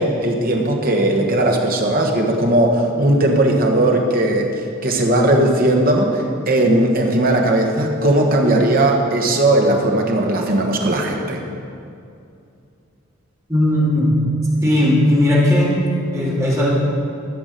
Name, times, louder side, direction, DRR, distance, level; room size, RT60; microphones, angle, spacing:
voice 1, 0.0-4.5 4.8-11.4, right 1 dB, 45° right, 1 dB, 1.3 m, -17 dB
voice 2, 13.5-14.2 14.6-15.8 16.1-16.7, left 1 dB, 15° right, -7 dB, 2.8 m, -16 dB
14.0 x 6.1 x 6.6 m, 2.5 s
head